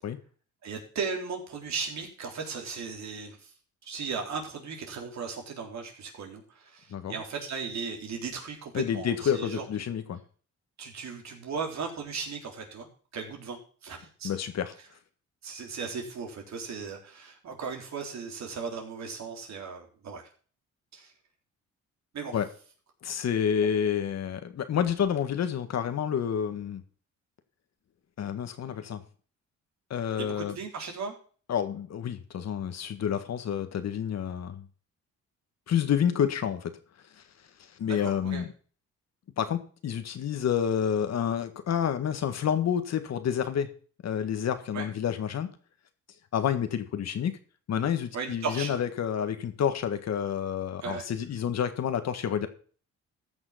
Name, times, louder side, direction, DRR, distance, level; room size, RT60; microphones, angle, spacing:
voice 1, 0.6-3.5 3.8-9.6 10.8-12.9 13.1-14.3 15.4-20.3 20.9-21.1 22.1-22.4 30.2-31.1 37.9-38.4 44.7-44.9 48.1-48.8 50.8-51.1, right 5 dB, 65° right, 2 dB, 3.8 m, -36 dB
voice 2, 8.7-10.2 14.2-14.7 22.3-22.5 23.0-26.8 28.2-29.0 29.9-30.5 31.5-34.6 35.7-36.7 37.2-37.3 37.8-38.5 39.4-43.7 44.0-45.5 46.3-47.3 47.7-52.5, left 8 dB, 60° left, 9 dB, 1.7 m, -29 dB
14.5 x 6.2 x 5.8 m, 0.42 s
cardioid pair, 90°, 30 cm